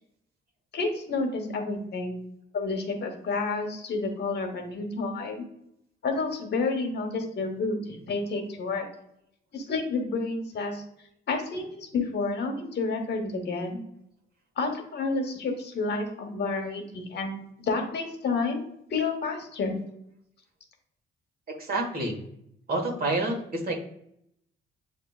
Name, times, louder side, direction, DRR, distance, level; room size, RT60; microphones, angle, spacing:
voice 1, 0.7-2.2 2.5-5.5 6.0-8.8 9.5-10.8 11.3-13.8 14.6-18.6 18.9-19.8, left 3 dB, 60° left, 3 dB, 1.1 m, -30 dB
voice 2, 21.5-22.2 22.7-23.8, right 2 dB, 50° right, 1 dB, 1.4 m, -28 dB
7.1 x 2.9 x 2.3 m, 0.74 s
cardioid pair, 90°, 20 cm